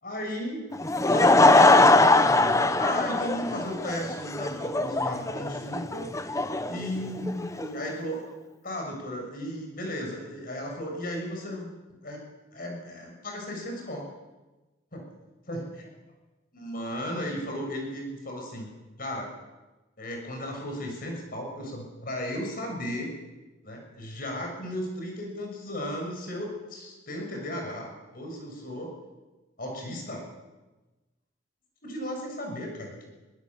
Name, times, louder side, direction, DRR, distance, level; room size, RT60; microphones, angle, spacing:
voice 1, 0.0-0.7 1.0-6.2 6.7-8.2 8.6-11.7 12.0-12.2 12.5-14.1 14.9-15.0 15.5-15.6 16.5-18.7 19.0-19.3 20.0-23.1 23.6-28.9 29.6-30.3 31.8-33.1, equal, 50° left, 2 dB, 6.4 m, -35 dB
Laughter / Crowd, 0.7-7.7, left 2 dB, 15° left, 0.9 m, -21 dB
23.0 x 18.5 x 7.4 m, 1.1 s
head